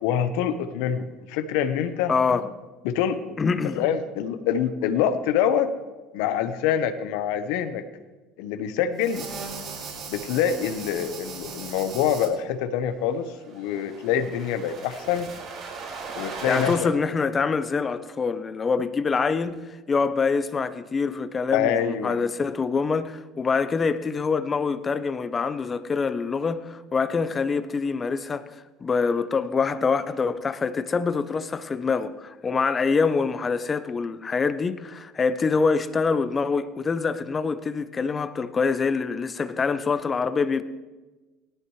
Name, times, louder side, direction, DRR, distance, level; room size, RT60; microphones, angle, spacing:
voice 1, 0.0-2.4 2.8-5.7 6.1-7.8 8.4-9.3 10.1-15.3 16.2-16.9 21.5-22.2, left 9 dB, 75° left, 1.1 m, -26 dB
voice 2, 2.1-2.4 3.4-3.8 16.5-19.6 19.9-28.5 28.8-40.6, left 5 dB, 25° left, 0.8 m, -25 dB
sound 1, 9.0-12.3 13.4-16.7, right 5 dB, 55° right, 4.5 m, -38 dB
17.5 x 14.0 x 3.3 m
supercardioid pair, 95°, 0 cm